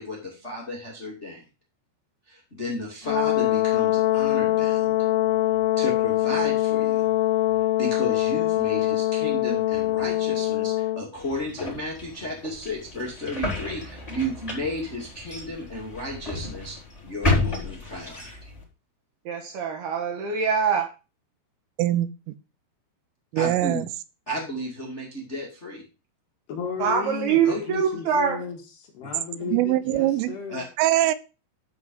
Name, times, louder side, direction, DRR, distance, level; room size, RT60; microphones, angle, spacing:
voice 1, 0.0-1.4 2.3-5.0 5.8-7.1 7.8-16.7 17.0-18.5 23.3-23.8 24.3-25.8 27.4-27.6 29.0-29.1 30.5-30.6, equal, 30° left, 1.2 m, -33 dB
Brass instrument, 3.0-11.0, left 16 dB, 90° left, 3.4 m, -23 dB
sound 1, 11.1-18.6, left 2 dB, 10° left, 3.2 m, -31 dB
voice 2, 19.2-20.9 26.8-28.4, right 7 dB, 65° right, 2.9 m, -24 dB
voice 3, 21.8-22.3 23.3-23.9 29.5-30.4 30.8-31.1, right 14 dB, 85° right, 3.2 m, -23 dB
voice 4, 26.5-30.7, left 6 dB, 60° left, 3.6 m, -35 dB
12.0 x 5.0 x 5.5 m
omnidirectional pair, 5.8 m